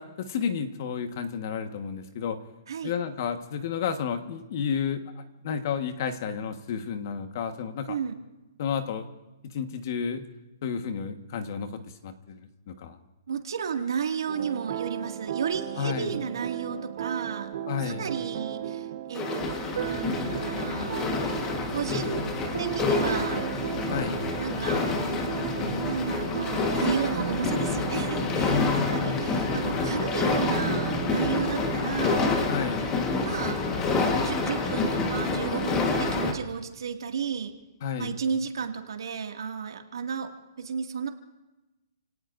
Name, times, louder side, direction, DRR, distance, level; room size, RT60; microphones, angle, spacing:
voice 1, 0.0-2.4 2.8-8.0 8.6-9.0 9.4-10.3 10.6-13.0 15.8-16.1 17.7-18.1 23.9-24.3 28.5-29.3 29.7-30.0 32.5-32.9 37.8-38.1, left 7 dB, 45° left, 7 dB, 1.4 m, -31 dB
voice 2, 13.3-17.5 17.8-20.9 21.7-22.2 22.6-23.4 24.2-32.3 33.2-33.6 34.1-37.5 38.0-40.3 40.6-41.1, right 6 dB, 80° right, 3 dB, 2.1 m, -33 dB
sound 1, 14.3-31.7, right 11 dB, 50° right, 1.3 m, -36 dB
sound 2, 19.1-36.3, left 3 dB, 20° left, 1.4 m, -28 dB
30.0 x 18.0 x 2.6 m, 1.0 s
hypercardioid pair, 165°, 2 cm